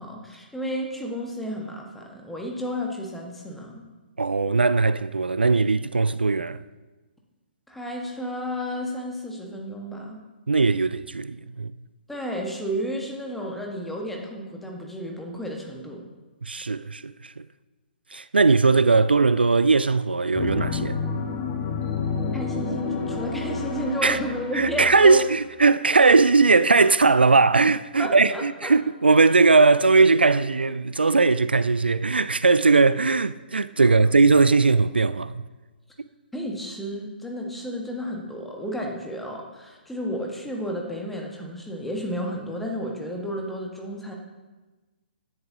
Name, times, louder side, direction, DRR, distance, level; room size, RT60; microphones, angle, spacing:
voice 1, 0.0-3.9 7.7-10.2 12.1-16.0 22.3-25.2 28.0-28.7 36.3-44.1, equal, 5° left, 1.4 m, -32 dB
voice 2, 4.2-6.6 10.5-11.7 16.4-17.4 18.1-21.0 24.0-24.2 24.5-35.4, right 4 dB, 75° right, 0.4 m, -19 dB
sound 1, 20.3-25.4, left 5 dB, 25° left, 1.4 m, -30 dB
15.5 x 10.5 x 2.8 m
figure-of-eight pair, 125°, 6 cm